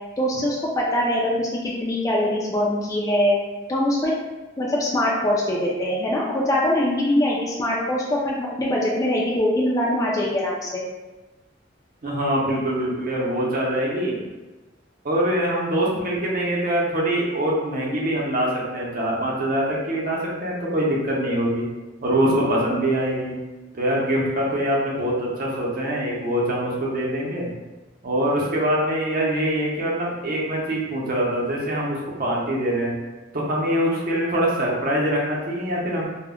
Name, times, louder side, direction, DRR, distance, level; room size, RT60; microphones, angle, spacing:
voice 1, 0.2-3.3 3.7-4.1 4.6-10.8, left 1 dB, 20° left, -4 dB, 0.3 m, -23 dB
voice 2, 12.0-14.2 15.0-21.7 22.0-23.4 23.8-27.5 28.0-32.9 33.3-36.1, right 1 dB, 50° right, -4 dB, 0.6 m, -24 dB
2.1 x 2.0 x 3.5 m, 1.1 s
head